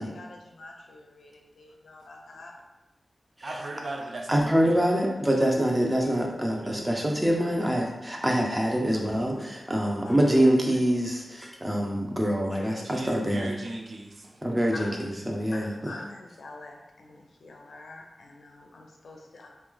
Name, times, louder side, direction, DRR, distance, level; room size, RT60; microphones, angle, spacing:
voice 1, 0.1-2.5 9.8-10.1 12.5-12.7 14.7-14.9 15.5-19.5, left 2 dB, 80° left, 1 dB, 0.6 m, -45 dB
voice 2, 3.4-4.8 6.6-7.0 12.8-14.4, right 2 dB, 60° right, 0 dB, 0.6 m, -38 dB
voice 3, 4.3-13.5 14.4-16.0, equal, 15° right, 0 dB, 0.6 m, -25 dB
3.2 x 2.9 x 3.6 m, 1.0 s
wide cardioid pair, 110°, 0 cm